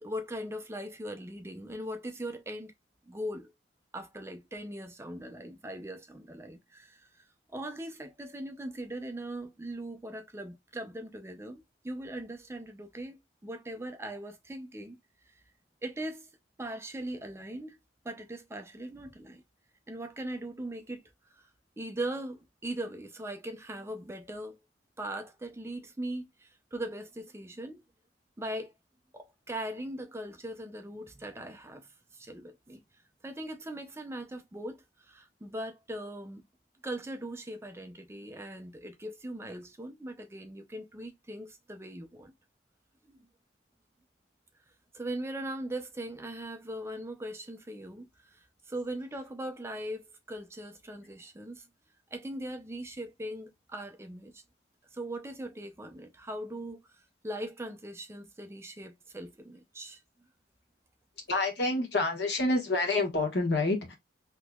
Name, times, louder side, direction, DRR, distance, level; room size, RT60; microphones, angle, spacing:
voice 1, 0.0-2.7 3.1-3.5 3.9-7.3 7.5-13.2 13.4-15.0 15.3-15.4 15.8-16.3 16.6-17.8 18.0-19.4 19.9-21.5 21.8-24.6 25.0-27.8 28.4-28.7 29.1-32.8 33.2-36.4 36.8-42.3 43.1-43.3 44.9-51.7 52.1-54.4 54.9-60.0, right 1 dB, 15° right, 0.4 m, -40 dB
voice 2, 61.3-64.0, left 2 dB, 70° left, 1.3 m, -28 dB
3.6 x 2.9 x 2.3 m
head